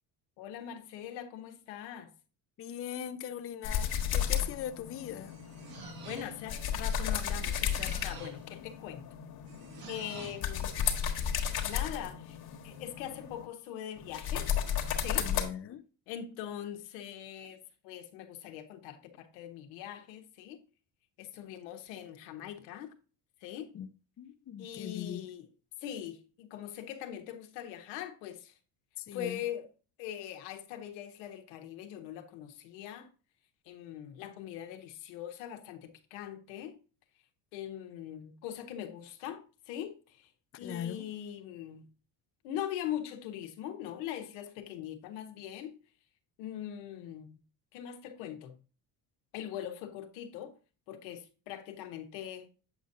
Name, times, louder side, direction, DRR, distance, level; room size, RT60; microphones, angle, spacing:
voice 1, 0.4-2.1 5.8-9.1 9.9-10.8 11.6-12.4 12.6-14.5 15.0-15.3 16.1-20.6 21.2-22.9 23.4-23.7 24.6-25.5 25.8-28.5 29.1-29.7 30.0-33.1 33.6-36.8 37.5-40.3 40.6-41.9 42.4-45.7 46.4-47.4 47.7-48.6 49.3-50.5 50.9-52.5, left 10 dB, 90° left, 1.1 m, -42 dB
voice 2, 2.6-5.3 15.2-15.8 23.7-23.9 24.2-25.3 29.0-29.4 40.6-41.1, left 9 dB, 30° left, 0.5 m, -40 dB
sound 1, 3.6-13.5 14.0-15.4, left 8 dB, 50° left, 1.4 m, -34 dB
sound 2, 5.0-6.6 7.3-8.5 9.5-10.5, right 5 dB, 50° right, 1.5 m, -49 dB
7.9 x 5.2 x 2.6 m
supercardioid pair, 95°, 48 cm